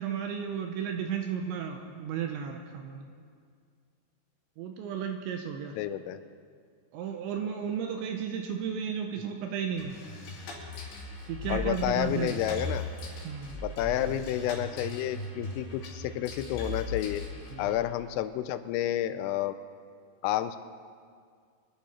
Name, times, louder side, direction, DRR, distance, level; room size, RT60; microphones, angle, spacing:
voice 1, 0.0-3.1 4.6-5.8 6.9-10.0 11.3-12.4 13.2-13.6 17.5-17.7, right 7 dB, 80° right, 4 dB, 2.8 m, -34 dB
voice 2, 5.8-6.2 11.5-12.8 13.6-17.2 17.6-19.6 20.2-20.6, left 12 dB, 85° left, 11 dB, 3.2 m, -30 dB
sound 1, 9.8-17.8, left 1 dB, 60° left, 4.8 m, -38 dB
26.0 x 11.0 x 4.3 m, 2.1 s
omnidirectional pair, 5.9 m